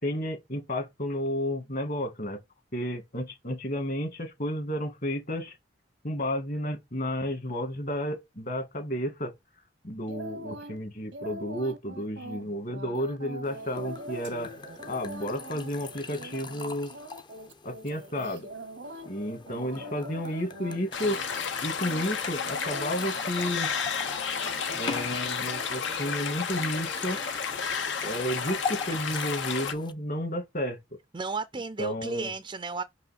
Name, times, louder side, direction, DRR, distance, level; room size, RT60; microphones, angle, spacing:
voice 1, 0.0-2.4 2.7-5.5 6.0-9.3 9.8-14.5 14.9-16.9 17.6-18.5 19.0-21.2 21.6-23.7 24.7-27.2 28.0-30.8 31.8-32.3, equal, 50° left, 1.7 m, -32 dB
sound 1, 10.1-10.8 11.1-19.1 19.5-20.8 21.0-21.5 21.8-25.2 25.5-26.1 26.5-26.7, right 1 dB, 90° right, 1.1 m, -43 dB
sound 2, 13.4-29.9, left 5 dB, 25° left, 0.5 m, -42 dB
sound 3, 20.9-29.7, left 6 dB, 90° left, 1.0 m, -32 dB
voice 2, 31.1-32.8, right 4 dB, 25° right, 0.4 m, -33 dB
5.3 x 5.2 x 4.2 m
head